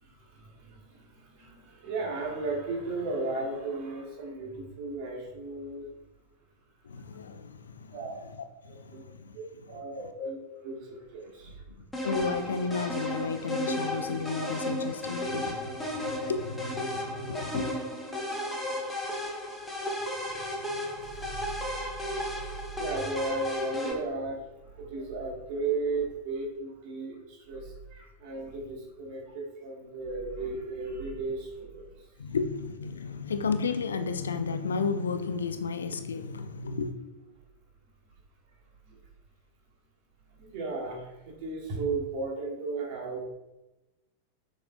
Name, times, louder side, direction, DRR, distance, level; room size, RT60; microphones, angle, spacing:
voice 1, 0.0-5.9 7.9-8.2 8.6-9.0 9.3-11.6 15.6-15.7 17.0-17.4 18.1-18.6 19.0-19.1 19.8-32.1 38.9-39.0 40.4-43.2, right 3 dB, 45° right, 1.4 m, -36 dB
voice 2, 6.8-8.0 8.8-9.4 9.7-9.8 11.8-17.7 32.2-36.9, left 5 dB, 70° left, 0.3 m, -33 dB
sound 1, 11.9-23.9, left 1 dB, 5° left, 0.9 m, -34 dB
6.9 x 3.0 x 2.3 m
figure-of-eight pair, 90°, 0 cm